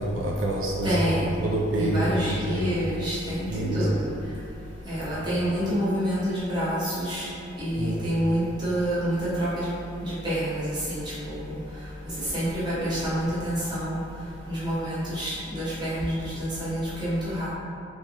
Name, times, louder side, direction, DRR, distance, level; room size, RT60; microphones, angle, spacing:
voice 1, 0.0-2.7 3.5-3.9 5.1-5.2 7.8-8.1, right 1 dB, 85° right, -2 dB, 0.3 m, -27 dB
voice 2, 0.8-1.4 1.8-4.1 4.9-7.3 7.6-9.7 10.0-11.6 12.2-14.0 14.5-17.5, equal, 25° right, -11 dB, 0.9 m, -28 dB
2.8 x 2.2 x 2.9 m, 2.6 s
head